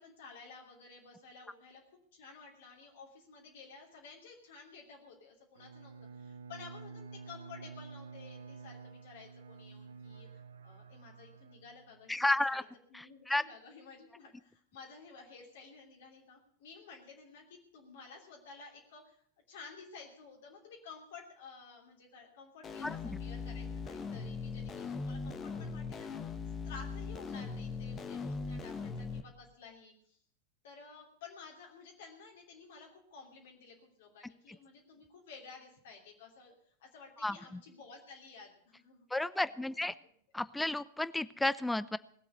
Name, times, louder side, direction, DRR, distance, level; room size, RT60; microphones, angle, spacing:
voice 1, 0.0-1.8 2.1-26.3 26.6-30.2 30.6-39.1 39.3-39.5 40.0-40.1, left 5 dB, 55° left, -1 dB, 3.0 m, -53 dB
Bowed string instrument, 5.5-12.2, right 5 dB, 65° right, 0.8 m, -50 dB
voice 2, 12.1-12.6 12.9-13.4 22.8-22.9 37.2-37.4 39.1-39.9 40.3-42.0, left 2 dB, 5° left, 17 dB, 0.5 m, -32 dB
sound 1, 22.6-29.2, left 4 dB, 25° left, 1.2 m, -40 dB
19.5 x 7.9 x 8.1 m, 0.64 s
figure-of-eight pair, 90°, 0 cm